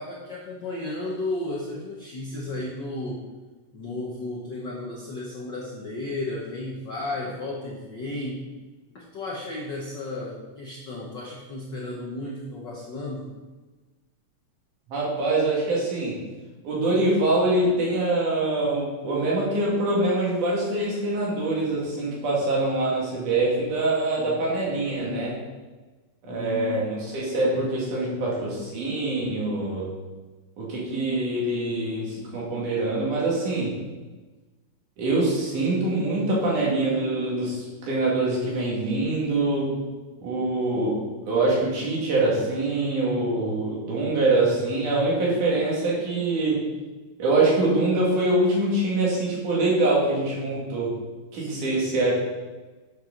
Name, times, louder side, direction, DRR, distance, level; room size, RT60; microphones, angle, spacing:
voice 1, 0.0-3.3 3.7-8.4 8.9-13.3 26.2-26.7 51.4-51.8, left 2 dB, 80° left, -4 dB, 1.0 m, -34 dB
voice 2, 14.9-16.2 16.6-25.4 26.2-29.9 30.6-33.8 35.0-39.8 40.2-46.6 47.2-51.0 51.3-52.1, right 2 dB, 70° right, -5 dB, 3.7 m, -24 dB
8.8 x 7.5 x 3.9 m, 1.2 s
omnidirectional pair, 3.8 m